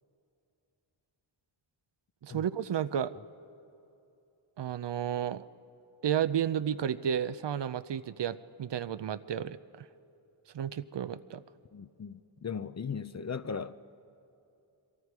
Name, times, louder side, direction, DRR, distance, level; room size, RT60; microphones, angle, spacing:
voice 1, 2.2-3.1 4.6-5.4 6.0-9.9 10.5-11.4, right 9 dB, 60° right, 14 dB, 0.7 m, -32 dB
voice 2, 11.7-13.8, left 6 dB, 35° left, 13 dB, 0.6 m, -38 dB
26.0 x 23.0 x 4.8 m, 2.7 s
cardioid pair, 55°, 49 cm